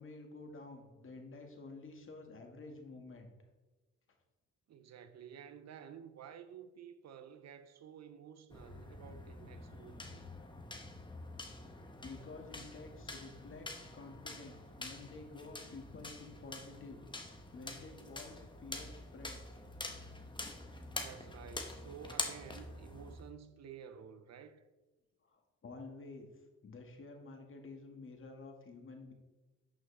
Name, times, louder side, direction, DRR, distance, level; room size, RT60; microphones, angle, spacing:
voice 1, 0.0-3.3 12.0-13.7 13.9-19.6 25.2-29.1, left 3 dB, 45° left, 1.8 m, -51 dB
voice 2, 4.7-10.2 20.9-24.6, right 8 dB, 60° right, 0.7 m, -52 dB
sound 1, 8.5-23.3, left 2 dB, 15° left, 1.2 m, -46 dB
11.0 x 6.3 x 3.4 m
cardioid pair, 90°, 30 cm